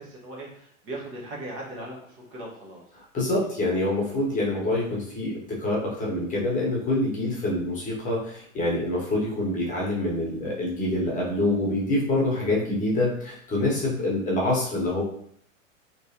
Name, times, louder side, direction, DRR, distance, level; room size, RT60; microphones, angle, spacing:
voice 1, 0.0-2.8, right 1 dB, 30° right, -3 dB, 1.1 m, -38 dB
voice 2, 2.9-15.0, left 1 dB, 20° left, -4 dB, 1.1 m, -26 dB
3.2 x 3.2 x 2.8 m, 0.66 s
figure-of-eight pair, 105°, 40 cm